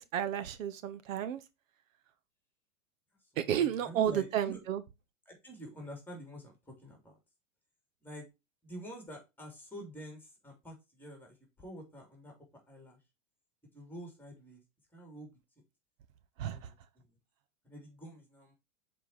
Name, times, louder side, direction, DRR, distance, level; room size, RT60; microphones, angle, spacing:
voice 1, 0.1-1.4 3.4-4.8 16.4-16.6, right 10 dB, 70° right, 1.1 m, -31 dB
voice 2, 3.2-4.6 5.2-7.2 8.0-8.3 8.6-13.0 13.7-14.6 14.9-15.3 16.4-17.2 17.6-18.5, equal, 5° left, 3.4 m, -48 dB
7.5 x 4.5 x 4.2 m
hypercardioid pair, 115°, 41 cm